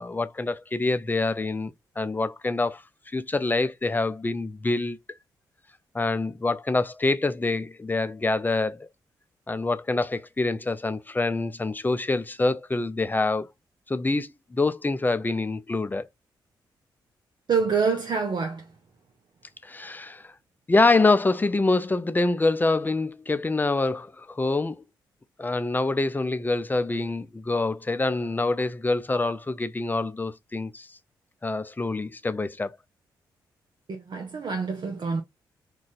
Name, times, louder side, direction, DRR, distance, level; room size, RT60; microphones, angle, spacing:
voice 1, 0.0-2.8 3.1-5.0 5.9-8.9 9.5-13.5 13.9-16.1 19.6-20.3 20.7-24.8 25.4-30.9 31.4-32.7, left 3 dB, 20° left, 0.5 m, -26 dB
voice 2, 17.5-18.7 33.9-35.2, right 5 dB, 55° right, 0.6 m, -26 dB
2.5 x 2.3 x 3.9 m
supercardioid pair, 45°, 9 cm